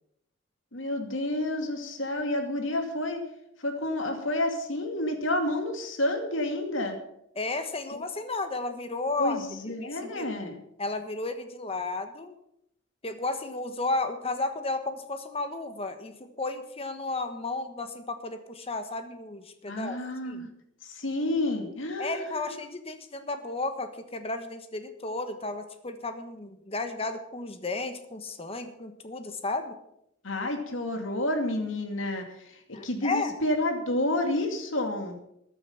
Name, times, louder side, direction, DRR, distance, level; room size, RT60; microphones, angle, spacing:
voice 1, 0.7-3.2 3.6-7.0 7.9-8.0 9.2-10.6 19.7-20.5 20.8-22.5 30.2-35.2, left 1 dB, 85° left, 5 dB, 2.4 m, -30 dB
voice 2, 7.3-9.7 10.0-10.3 10.8-12.3 13.0-20.0 20.2-20.5 22.0-29.7 32.7-33.3, left 3 dB, 30° left, 8 dB, 1.3 m, -33 dB
14.5 x 9.9 x 5.8 m, 0.78 s
head